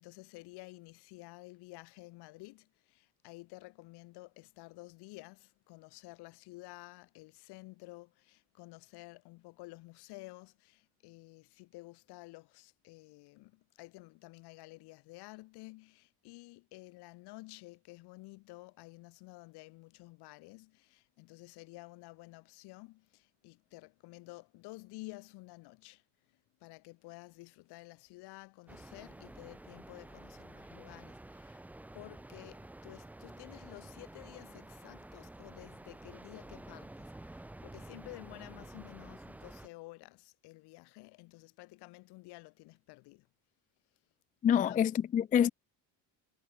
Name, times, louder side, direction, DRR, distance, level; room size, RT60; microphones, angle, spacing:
voice 1, 0.0-31.6 31.9-43.3 44.5-44.8, left 22 dB, 75° left, 3.8 m, -52 dB
sound 1, 28.7-39.7, right 1 dB, 5° right, 0.7 m, -50 dB
voice 2, 44.4-45.5, left 9 dB, 20° left, 0.4 m, -26 dB
cardioid pair, 145°, 39 cm